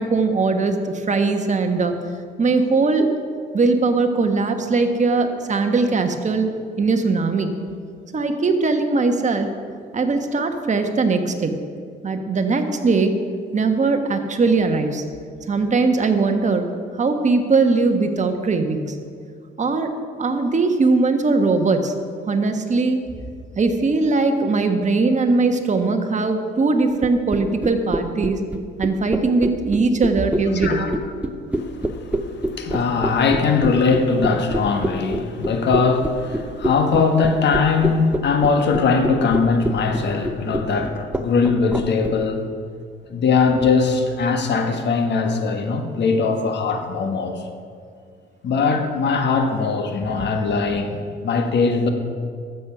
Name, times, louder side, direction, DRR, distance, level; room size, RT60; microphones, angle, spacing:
voice 1, 0.0-1.9 2.4-3.1 3.5-6.5 6.8-7.5 8.1-9.5 9.9-11.5 12.0-13.1 13.5-15.0 15.5-16.7 17.0-18.8 19.6-19.9 20.2-21.9 22.3-23.0 23.6-28.4 28.8-30.9, right 3 dB, 35° right, 6 dB, 1.3 m, -20 dB
sound 1, 27.0-42.1, right 1 dB, 5° right, 0.8 m, -25 dB
voice 2, 31.6-42.4 43.1-47.4 48.4-51.9, left 4 dB, 60° left, 5 dB, 1.5 m, -20 dB
12.5 x 7.9 x 6.0 m, 2.2 s
cardioid pair, 90°, 20 cm